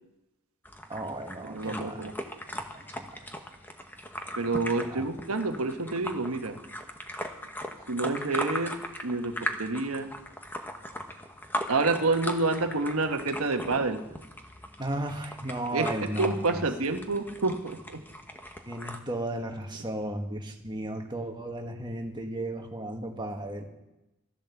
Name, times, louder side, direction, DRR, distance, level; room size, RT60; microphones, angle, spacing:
sound 1, 0.7-19.0, left 1 dB, 10° left, 1.0 m, -39 dB
voice 1, 0.9-2.1 2.5-3.3 4.9-5.1 14.8-16.6 18.7-23.7, right 1 dB, 20° right, 3 dB, 1.6 m, -35 dB
voice 2, 1.5-2.1 4.4-6.6 7.9-8.7 9.0-10.1 11.7-14.0 15.7-15.9 16.2-18.0, right 3 dB, 75° right, 6 dB, 1.3 m, -28 dB
14.5 x 11.5 x 7.0 m, 0.97 s
head